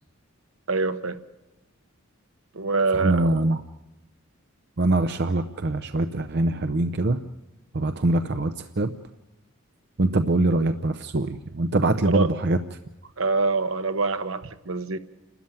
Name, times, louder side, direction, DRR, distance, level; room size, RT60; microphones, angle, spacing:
voice 1, 0.7-1.2 2.5-3.3 12.1-12.3 13.2-15.0, right 4 dB, 70° right, 10 dB, 1.1 m, -25 dB
voice 2, 2.9-3.6 4.8-7.2 7.7-8.9 10.0-12.6, right 2 dB, 50° right, 10 dB, 0.7 m, -23 dB
29.0 x 13.0 x 9.0 m, 0.98 s
head